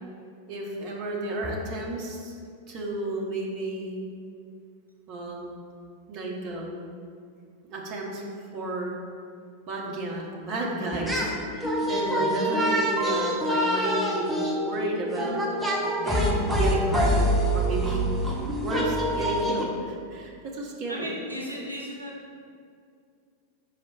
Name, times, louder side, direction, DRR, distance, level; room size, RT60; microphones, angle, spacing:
voice 1, 0.5-2.3 2.7-4.1 5.1-5.6 6.1-6.9 7.7-8.2 8.5-9.0 9.7-11.3 11.5-15.4 16.0-17.2 17.5-18.0 18.6-21.1, right 2 dB, 40° right, -1 dB, 1.0 m, -32 dB
sound 1, 10.9-11.3 11.6-19.6, equal, 5° right, 1.0 m, -26 dB
voice 2, 20.9-22.1, equal, 85° right, -2 dB, 0.8 m, -36 dB
5.8 x 4.7 x 4.2 m, 2.3 s
figure-of-eight pair, 90°, 0 cm